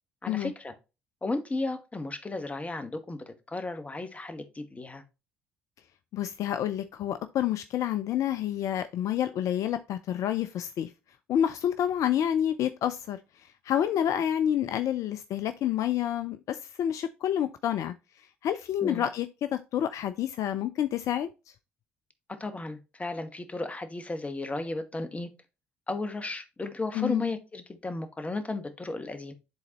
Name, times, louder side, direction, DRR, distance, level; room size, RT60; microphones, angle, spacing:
voice 1, 0.2-0.7 1.2-5.0 18.8-19.1 22.4-25.3 25.9-29.3, left 2 dB, 20° left, 1.2 m, -34 dB
voice 2, 6.1-10.9 11.3-21.3 26.9-27.3, left 10 dB, 55° left, 0.4 m, -29 dB
10.5 x 3.9 x 2.9 m
hypercardioid pair, 55°, 6 cm